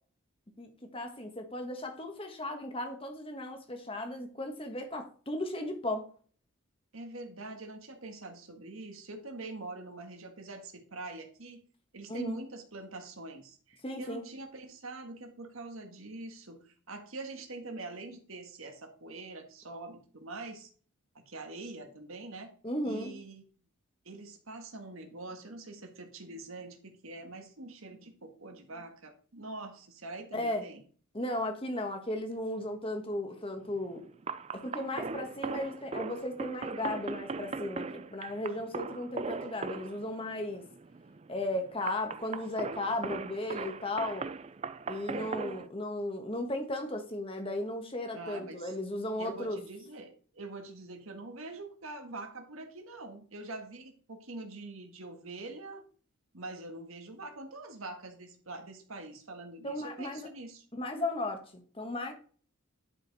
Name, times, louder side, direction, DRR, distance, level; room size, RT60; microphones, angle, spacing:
voice 1, 0.6-6.1 12.1-12.4 13.8-14.3 22.6-23.2 30.3-30.7 31.1-34.0 34.5-40.6 41.3-44.3 44.9-49.6 59.6-60.3 60.7-62.1, left 1 dB, 25° left, 5 dB, 1.3 m, -35 dB
voice 2, 6.9-11.6 11.9-20.7 21.1-22.5 22.8-23.4 24.0-30.8 34.9-35.2 45.1-45.4 48.1-48.7 49.2-55.8 56.3-60.6, right 2 dB, 75° right, 5 dB, 1.7 m, -44 dB
sound 1, 33.7-45.7, right 4 dB, 30° right, 0.4 m, -40 dB
11.0 x 5.0 x 4.0 m, 0.42 s
head